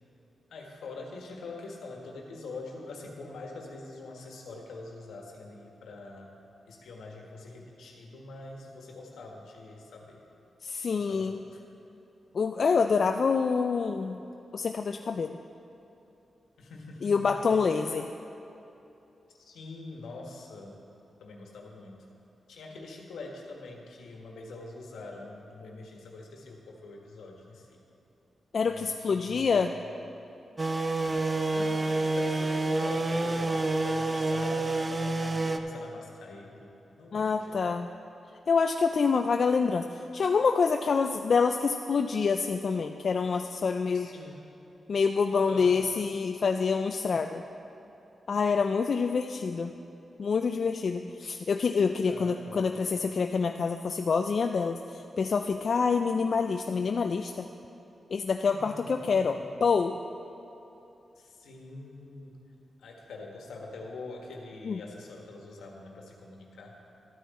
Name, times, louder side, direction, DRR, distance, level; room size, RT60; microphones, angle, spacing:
voice 1, 0.5-6.3 6.7-10.2 10.9-11.6 16.6-17.9 19.4-20.8 21.2-22.0 22.5-27.8 28.6-29.7 31.5-37.7 43.9-44.4 45.5-45.9 52.1-52.7 58.5-59.4 61.2-62.4 62.8-66.8, left 3 dB, 90° left, 0 dB, 1.4 m, -44 dB
voice 2, 10.6-11.4 12.3-14.2 14.5-15.4 17.0-18.1 28.5-29.7 37.1-37.9 38.5-44.1 44.9-47.4 48.3-49.7 50.2-57.5 58.1-59.9 64.7-64.8, left 5 dB, 60° left, 6 dB, 0.3 m, -27 dB
sound 1, 30.6-35.6, right 2 dB, 35° right, 0.6 m, -28 dB
13.0 x 9.3 x 4.2 m, 2.9 s
cardioid pair, 60°, 0 cm